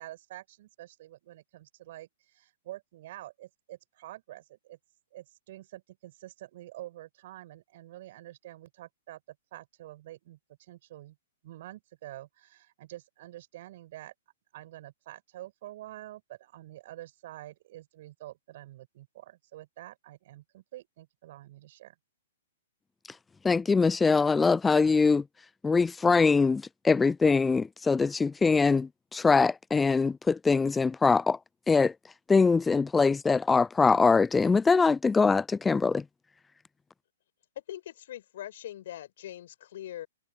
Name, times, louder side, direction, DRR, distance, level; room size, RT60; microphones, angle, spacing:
voice 1, 0.0-4.8 5.1-11.2 11.4-14.1 14.5-22.0, right 15 dB, 50° right, 5.2 m, -47 dB
voice 2, 23.4-25.2 25.6-31.4 31.7-31.9 32.3-36.0, left 4 dB, 10° left, 0.3 m, -23 dB
voice 3, 37.7-40.1, left 12 dB, 55° left, 5.6 m, -42 dB
figure-of-eight pair, 110°, 0 cm